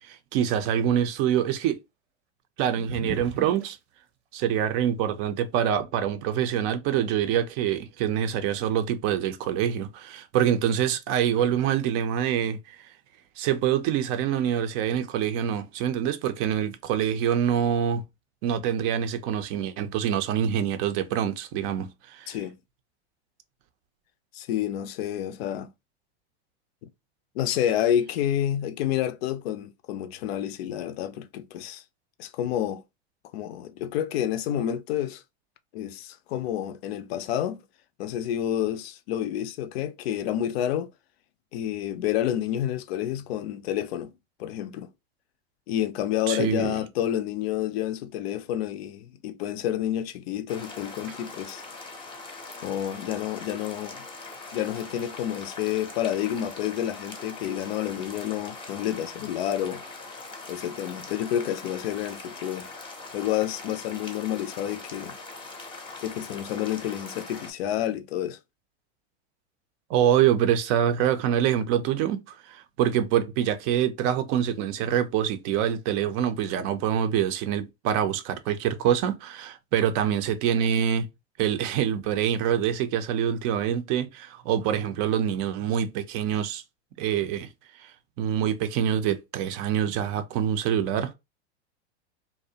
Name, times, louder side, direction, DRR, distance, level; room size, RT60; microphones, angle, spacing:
voice 1, 0.0-1.8 2.6-3.8 4.3-12.9 13.4-18.0 18.4-22.4 46.3-46.8 69.9-81.1 81.4-86.6 87.0-87.5 87.8-91.1, right 9 dB, 45° right, 0.5 m, -25 dB
sound 1, 2.8-3.7 4.9-5.0 5.7-6.2, right 5 dB, 75° right, 0.7 m, -38 dB
voice 2, 24.3-25.7 27.4-31.8 32.2-32.8 33.3-35.2 35.7-37.6 38.0-40.9 41.5-44.1 44.4-44.9 45.7-51.6 52.6-54.1 54.5-59.8 60.5-62.7 63.1-65.2 66.0-68.4, left 11 dB, 65° left, 0.5 m, -29 dB
sound 2, 50.5-67.5, left 3 dB, 15° left, 0.6 m, -42 dB
2.5 x 2.0 x 2.6 m
hypercardioid pair, 110°, 33 cm